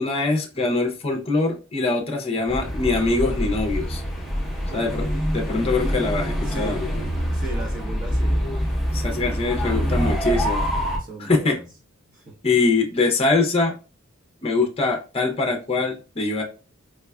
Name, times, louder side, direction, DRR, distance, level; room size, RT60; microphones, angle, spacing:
voice 1, 0.0-4.0 4.7-5.1 5.3-7.0 8.9-10.7 11.2-11.5 12.4-13.7 14.4-16.4, left 3 dB, 30° left, 2 dB, 0.5 m, -23 dB
sound 1, 2.5-11.0, equal, ahead, 0.8 m, -25 dB
voice 2, 4.7-5.3 6.4-6.8 7.3-8.4 11.0-11.6 12.1-12.3, right 2 dB, 45° right, -1 dB, 1.0 m, -37 dB
4.6 x 2.3 x 2.2 m, 0.33 s
head